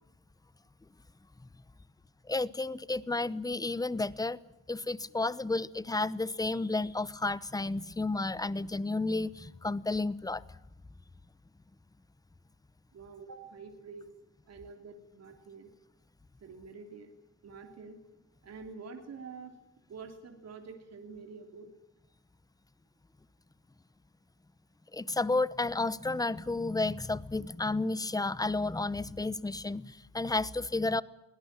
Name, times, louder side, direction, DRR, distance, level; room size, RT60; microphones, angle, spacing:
voice 1, 2.3-4.4 4.7-10.4 24.9-31.0, left 2 dB, 10° left, 0.9 m, -32 dB
voice 2, 12.9-14.1 14.5-15.7 16.4-17.1 17.4-18.0 18.4-19.6 19.9-21.7, right 4 dB, 55° right, 3.2 m, -47 dB
23.0 x 17.5 x 9.0 m
cardioid pair, 90°, 30 cm